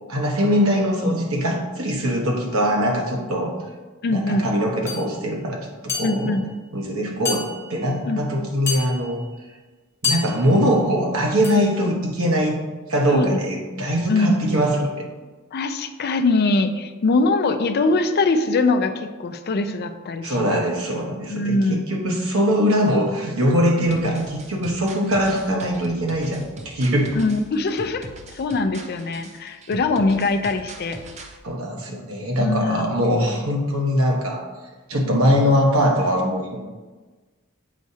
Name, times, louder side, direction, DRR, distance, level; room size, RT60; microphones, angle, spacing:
voice 1, 0.1-3.5 4.1-6.4 6.7-9.2 10.0-12.6 12.9-15.1 20.2-27.2 31.4-34.4 34.9-36.6, equal, 75° right, 0 dB, 1.1 m, -22 dB
voice 2, 4.0-4.5 6.0-6.4 8.0-8.2 13.1-13.4 14.1-14.4 15.5-20.6 21.3-21.8 27.1-31.0 32.4-33.4, left 3 dB, 50° left, 8 dB, 0.4 m, -22 dB
sound 1, 4.9-5.1 5.9-6.4 7.2-7.9 8.7-9.3 10.0-10.7 11.4-11.8, left 5 dB, 10° left, 1.2 m, -29 dB
sound 2, 23.9-31.4, right 2 dB, 30° right, 0.5 m, -41 dB
7.3 x 4.8 x 2.8 m, 1.3 s
head